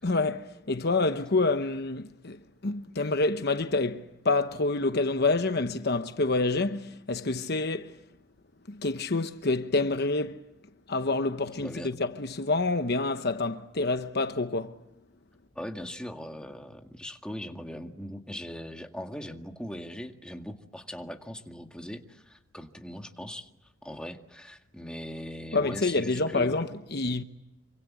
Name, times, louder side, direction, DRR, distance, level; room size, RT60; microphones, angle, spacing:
voice 1, 0.0-7.9 8.7-10.4 10.9-14.8 25.5-27.2, left 3 dB, 50° left, 1.0 m, -27 dB
voice 2, 11.6-11.9 15.6-23.5 23.8-26.7, equal, 5° left, 1.9 m, -40 dB
27.0 x 25.0 x 8.4 m
head